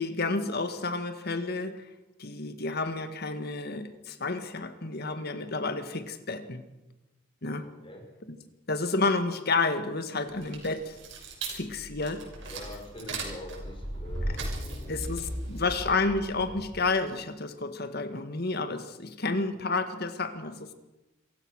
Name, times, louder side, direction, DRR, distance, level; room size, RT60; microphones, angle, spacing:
voice 1, 0.0-1.8 2.2-6.6 7.4-7.7 8.3-8.4 8.7-11.0 11.5-12.2 14.9-20.7, left 3 dB, 50° left, 9 dB, 1.9 m, -30 dB
voice 2, 7.6-8.1 12.4-15.9, left 1 dB, 25° left, 2 dB, 5.5 m, -45 dB
sound 1, 10.3-16.8, right 1 dB, 65° right, 6.2 m, -37 dB
26.0 x 15.5 x 6.5 m, 1.0 s
head